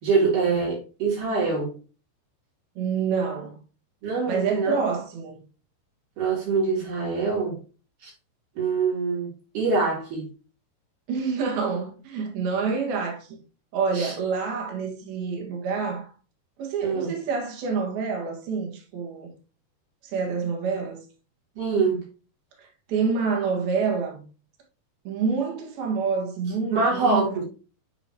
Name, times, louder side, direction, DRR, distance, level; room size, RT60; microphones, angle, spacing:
voice 1, 0.0-1.7 4.0-4.9 6.2-7.6 8.0-8.1 8.6-9.3 9.5-10.3 13.9-14.2 16.8-17.1 21.6-22.0 26.7-27.4, right 4 dB, 55° right, 4.3 m, -24 dB
voice 2, 2.8-3.6 4.3-5.4 11.1-13.4 13.7-16.1 16.6-19.3 20.0-21.1 22.6-24.2 25.1-27.3, right 5 dB, 70° right, 3.4 m, -27 dB
10.5 x 4.0 x 2.9 m
omnidirectional pair, 4.7 m